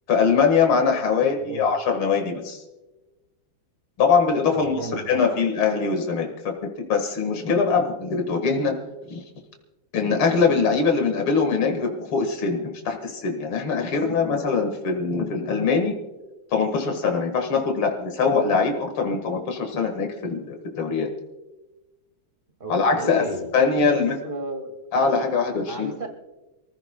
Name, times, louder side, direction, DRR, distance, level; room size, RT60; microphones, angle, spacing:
voice 1, 0.1-2.6 4.0-8.8 9.1-9.2 9.9-16.0 16.5-21.1 22.7-23.3 23.5-24.2 24.9-25.9, left 5 dB, 80° left, 3 dB, 2.5 m, -22 dB
voice 2, 1.3-1.7 4.5-5.4 22.6-23.5 23.9-24.8 25.7-26.1, right 1 dB, 25° right, 4 dB, 2.1 m, -34 dB
28.0 x 15.5 x 2.2 m, 1.1 s
omnidirectional pair, 2.3 m